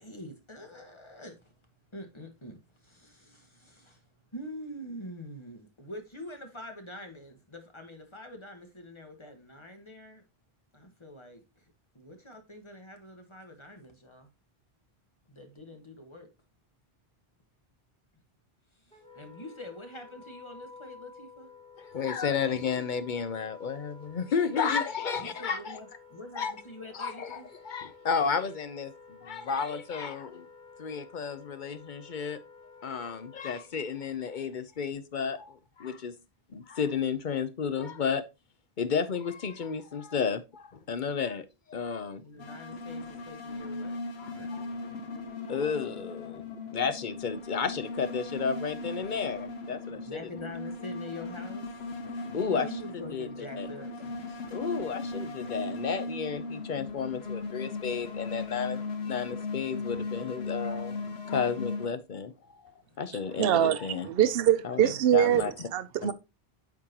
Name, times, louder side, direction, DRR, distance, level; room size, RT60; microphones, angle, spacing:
voice 1, 0.0-1.5 1.9-4.0 4.3-10.2 10.7-11.4 11.9-14.3 15.3-16.3 18.7-21.5 25.2-27.5 42.2-45.9 49.9-51.7 52.3-54.4 62.9-63.0 64.9-65.0 65.3-65.5, left 1 dB, 30° left, 1.5 m, -45 dB
Wind instrument woodwind instrument, 18.9-33.8, left 5 dB, 5° left, 1.3 m, -52 dB
voice 2, 21.8-25.8 26.4-26.5 26.9-30.5 30.8-32.4 32.8-36.2 36.5-38.2 38.8-42.2 44.2-44.7 45.5-46.4 46.7-50.3 52.3-52.7 52.9-53.3 53.6-53.7 54.5-61.0 61.3-62.3 63.0-64.1 64.6-65.7 66.0-66.1, left 6 dB, 55° left, 0.9 m, -32 dB
sound 1, 42.4-61.9, left 3 dB, 90° left, 1.4 m, -38 dB
voice 3, 63.4-65.4 65.7-66.1, right 10 dB, 70° right, 0.8 m, -24 dB
8.6 x 6.0 x 2.9 m
omnidirectional pair, 1.0 m